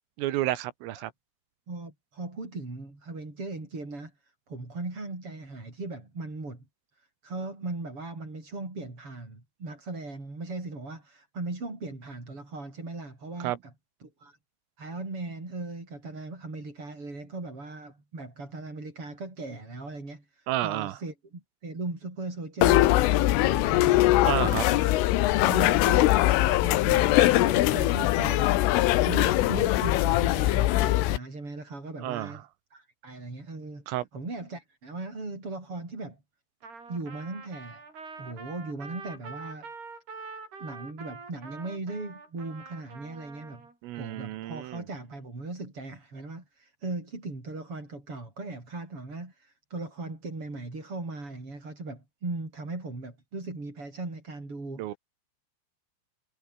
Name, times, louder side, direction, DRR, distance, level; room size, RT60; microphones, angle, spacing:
voice 1, 0.2-1.1 13.4-13.6 20.5-21.0 24.2-24.7 32.0-32.4 33.9-34.1 43.8-44.8 54.8-54.9, right 15 dB, 85° right, 4.0 m, -30 dB
voice 2, 1.7-6.6 7.0-13.6 14.2-14.4 14.8-32.4 32.7-33.8 34.1-36.2 36.9-37.8 38.2-39.7 40.6-43.6 44.0-55.0, right 2 dB, 25° right, 8.1 m, -38 dB
sound 1, 22.6-31.2, left 16 dB, 80° left, 3.7 m, -22 dB
Trumpet, 36.6-43.7, right 4 dB, 50° right, 9.5 m, -45 dB
omnidirectional pair, 5.9 m